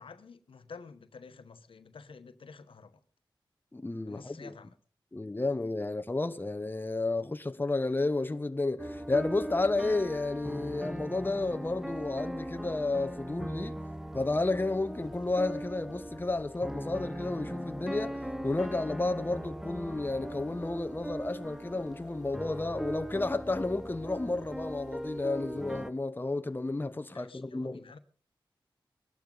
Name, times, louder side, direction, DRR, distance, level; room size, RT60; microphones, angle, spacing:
voice 1, 0.0-2.9 4.1-4.7 27.1-28.0, left 5 dB, 85° left, 1.2 m, -50 dB
voice 2, 3.7-4.5 5.1-13.8 14.1-27.8, left 2 dB, 25° left, 1.0 m, -32 dB
sound 1, 8.8-25.9, right 1 dB, 5° right, 0.8 m, -40 dB
21.0 x 12.0 x 4.0 m
wide cardioid pair, 60°, 9 cm